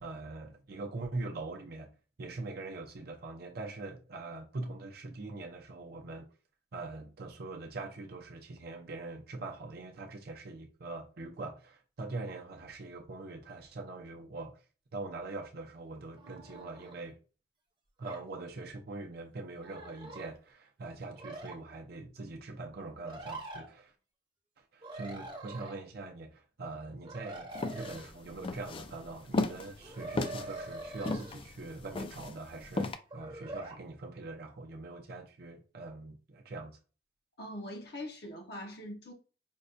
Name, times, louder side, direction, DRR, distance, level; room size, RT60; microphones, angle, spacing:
voice 1, 0.0-1.9 2.2-6.3 6.7-14.6 14.9-17.1 18.0-23.9 24.7-36.8, right 3 dB, 60° right, 0.6 m, -43 dB
sound 1, 16.2-16.9 18.0-18.2 19.6-20.3 21.1-21.6 23.0-23.7 24.8-25.8 27.0-28.1 29.8-31.4 33.1-33.8, right 2 dB, 25° right, 0.8 m, -44 dB
sound 2, 27.6-33.0, left 2 dB, 30° left, 0.3 m, -35 dB
voice 2, 37.4-39.1, left 1 dB, 60° left, 0.7 m, -42 dB
5.2 x 2.2 x 2.6 m
head